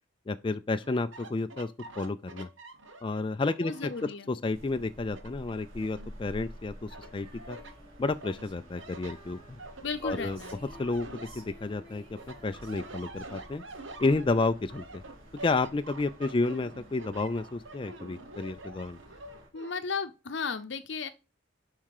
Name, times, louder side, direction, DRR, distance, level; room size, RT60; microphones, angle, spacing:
voice 1, 0.3-2.5 3.0-7.6 8.0-9.6 10.0-10.4 10.8-13.6 14.0-15.0 15.4-19.0, left 3 dB, 25° left, 0.4 m, -31 dB
sound 1, 0.8-4.3 4.7-6.5 6.9-7.8 8.2-11.8 12.2-19.8, right 2 dB, 70° right, 1.3 m, -47 dB
voice 2, 3.6-4.3 9.8-10.6 19.5-21.1, left 5 dB, 60° left, 0.7 m, -35 dB
sound 2, 4.5-19.5, equal, 85° right, 3.2 m, -51 dB
Female singing, 7.0-14.5, equal, 30° right, 3.6 m, -55 dB
7.3 x 5.5 x 4.8 m
head